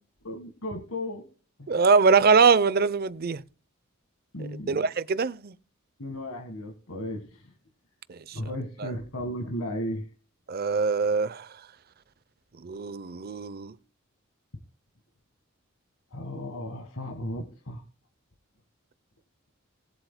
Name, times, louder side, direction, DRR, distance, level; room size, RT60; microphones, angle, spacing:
voice 1, 0.2-1.3 1.6-1.7 4.3-4.8 6.0-7.5 8.3-10.1 16.1-17.8, left 1 dB, 75° left, 1.7 m, -35 dB
voice 2, 1.7-3.4 4.4-5.5 8.1-8.4 8.8-8.9 10.5-11.5 12.6-13.8, right 5 dB, 50° right, 0.6 m, -23 dB
19.5 x 7.8 x 2.2 m
head